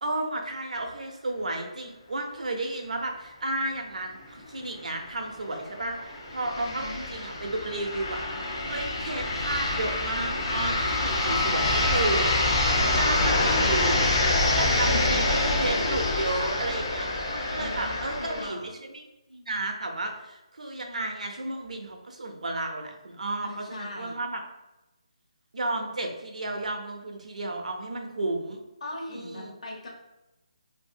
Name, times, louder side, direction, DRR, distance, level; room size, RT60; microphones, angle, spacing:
voice 1, 0.0-8.2 8.6-12.2 12.9-14.1 14.6-18.6 18.9-19.0 19.3-24.4 25.5-28.6 29.1-29.5, right 2 dB, 80° right, 3 dB, 0.6 m, -32 dB
sound 1, 4.4-4.5 4.8-4.9 5.7-18.5, left 2 dB, 40° left, 0.7 m, -26 dB
voice 2, 6.6-7.0 11.3-11.9 14.8-15.9 17.5-18.7 23.4-24.2 28.8-29.9, left 1 dB, 65° left, -2 dB, 1.0 m, -40 dB
2.6 x 2.6 x 2.6 m, 0.97 s
hypercardioid pair, 165°, 4 cm